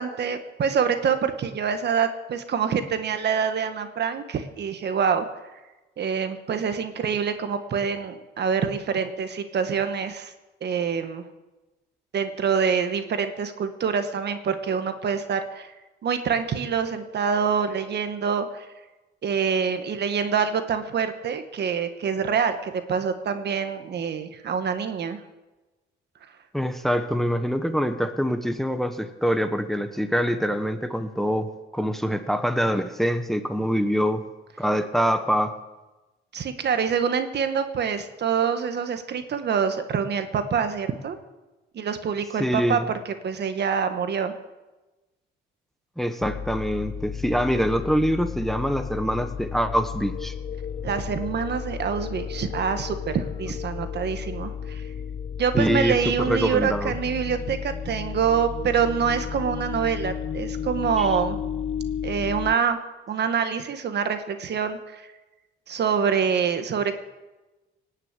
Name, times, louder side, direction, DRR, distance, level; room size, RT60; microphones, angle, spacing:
voice 1, 0.0-5.3 6.0-10.3 10.6-11.2 12.1-15.7 16.0-18.7 19.2-25.2 36.3-41.2 41.7-44.3 50.8-54.8 55.4-61.4 62.0-62.8 63.1-65.1 65.7-66.9, right 6 dB, 60° right, 9 dB, 1.5 m, -26 dB
voice 2, 26.5-31.5 31.7-34.2 34.6-35.5 42.4-42.9 46.0-50.3 53.7-53.8 55.5-56.9 61.0-61.1, equal, ahead, 8 dB, 1.1 m, -24 dB
sound 1, 46.2-62.6, left 7 dB, 35° left, 0.5 m, -33 dB
18.5 x 6.6 x 9.0 m, 1.1 s
cardioid pair, 90°, 20 cm